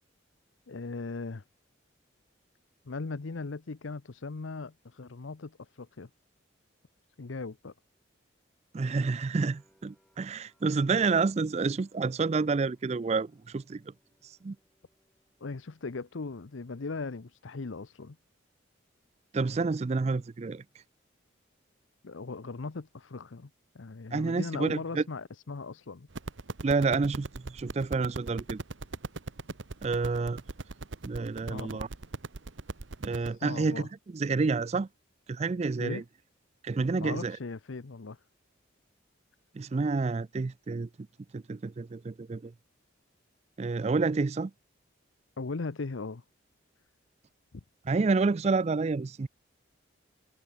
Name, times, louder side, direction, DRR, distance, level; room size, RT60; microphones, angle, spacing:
voice 1, 0.7-1.4 2.8-6.1 7.2-7.7 15.4-18.2 22.0-23.5 23.7-26.1 31.5-31.9 33.1-33.9 35.8-36.0 37.0-38.2 45.4-46.2 47.5-47.6, left 3 dB, 75° left, 0.7 m, -38 dB
voice 2, 8.7-13.9 14.2-14.6 19.3-20.6 24.1-25.0 26.6-28.6 29.8-30.4 31.0-31.9 33.0-34.9 35.3-36.0 36.6-37.4 39.5-40.9 41.3-42.5 43.6-44.5 47.9-49.3, right 4 dB, 30° right, 0.4 m, -29 dB
sound 1, 9.4-16.2 16.4-17.3, equal, 5° left, 7.9 m, -71 dB
sound 2, 26.1-33.3, right 3 dB, 70° right, 1.0 m, -39 dB
head